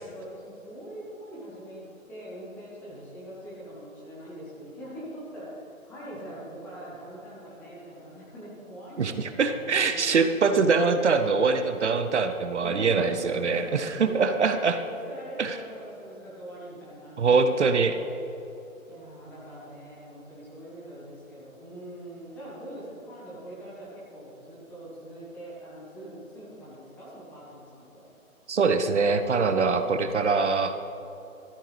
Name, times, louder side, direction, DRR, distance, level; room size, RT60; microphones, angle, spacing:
voice 1, 0.0-10.2 12.6-14.5 14.8-17.6 17.9-18.1 18.9-28.1 29.2-30.3, right 1 dB, 5° left, -8 dB, 0.8 m, -43 dB
voice 2, 9.0-14.8 15.4-15.5 17.2-17.9 28.5-30.7, right 4 dB, 55° right, 8 dB, 0.7 m, -23 dB
13.5 x 12.0 x 3.2 m, 2.9 s
figure-of-eight pair, 145°, 43 cm